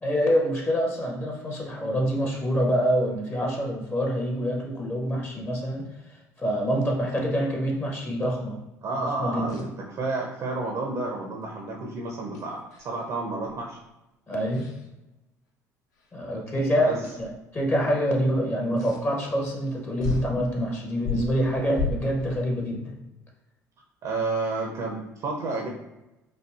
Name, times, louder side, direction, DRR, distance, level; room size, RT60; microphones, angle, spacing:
voice 1, 0.0-5.9 6.4-8.6 9.0-9.6 14.3-14.6 16.1-22.9, equal, 25° left, 0 dB, 0.7 m, -26 dB
voice 2, 8.8-13.8 16.8-17.0 24.0-25.7, right 3 dB, 45° right, 0 dB, 0.5 m, -30 dB
sound 1, 9.5-9.7 12.3-13.0 13.5-13.8 14.5-14.9 16.0-16.1 17.0-17.3 18.8-19.0 19.7-19.8 20.0-20.3 21.0-22.3, left 4 dB, 70° left, 0.6 m, -33 dB
4.2 x 2.5 x 2.3 m, 0.99 s
figure-of-eight pair, 55°, 9 cm